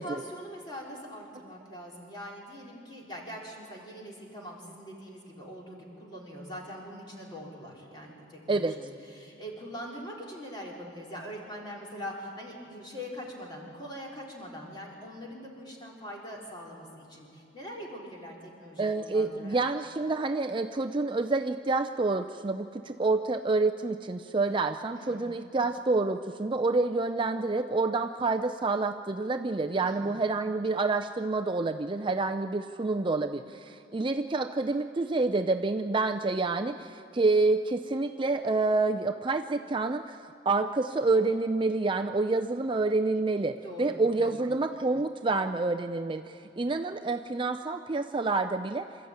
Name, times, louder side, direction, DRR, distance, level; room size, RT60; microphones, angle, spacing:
voice 1, 0.0-19.6 25.0-25.3 29.8-30.2 43.6-44.5, equal, 25° left, -3 dB, 4.0 m, -43 dB
voice 2, 18.8-48.9, right 3 dB, 25° right, 6 dB, 0.4 m, -28 dB
27.0 x 13.0 x 8.8 m, 2.6 s
head